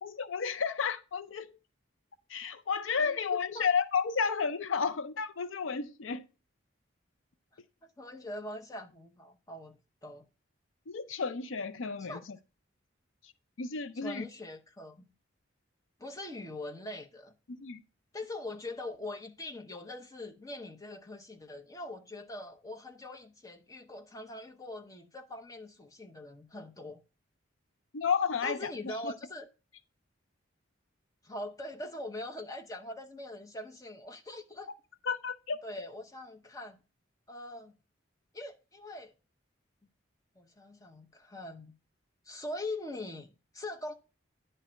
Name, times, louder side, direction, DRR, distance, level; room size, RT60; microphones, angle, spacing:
voice 1, 0.0-1.5 2.3-6.2 10.9-12.2 13.6-14.2 17.6-17.8 27.9-29.1 35.1-35.6, left 5 dB, 80° left, 0.5 m, -32 dB
voice 2, 3.0-3.7 8.0-10.2 12.1-12.2 13.9-15.1 16.0-17.3 18.1-27.0 28.4-29.5 31.2-34.7 35.6-36.8 37.3-37.8 38.3-39.1 40.4-41.7 42.2-43.9, left 2 dB, 15° left, 0.7 m, -42 dB
9.9 x 3.3 x 6.1 m
head